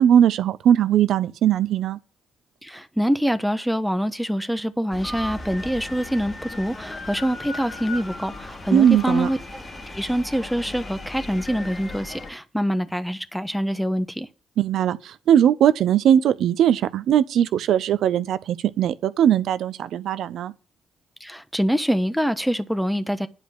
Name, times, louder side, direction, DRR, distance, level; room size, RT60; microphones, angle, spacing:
voice 1, 0.0-2.0 8.7-9.3 14.6-20.5, right 9 dB, 70° right, 0.5 m, -19 dB
voice 2, 2.6-9.6 9.9-14.3 21.2-23.3, equal, ahead, 1.2 m, -25 dB
sound 1, 4.9-12.3, left 2 dB, 40° left, 2.7 m, -36 dB
9.9 x 5.1 x 7.9 m
hypercardioid pair, 40°, 0 cm